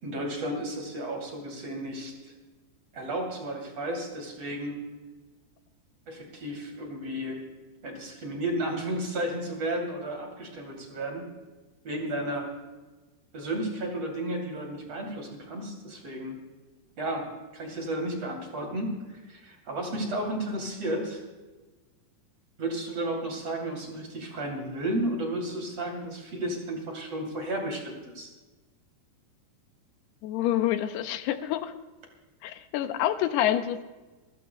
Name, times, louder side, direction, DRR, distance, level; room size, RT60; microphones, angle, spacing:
voice 1, 0.0-2.1 2.9-4.8 6.1-7.4 7.8-11.3 11.8-12.5 13.3-16.4 17.0-21.2 22.6-28.3, right 1 dB, 40° right, 1 dB, 3.4 m, -33 dB
voice 2, 30.2-31.7 32.4-33.8, left 12 dB, 85° left, 9 dB, 2.7 m, -27 dB
27.5 x 14.5 x 2.2 m, 1.2 s
omnidirectional pair, 4.7 m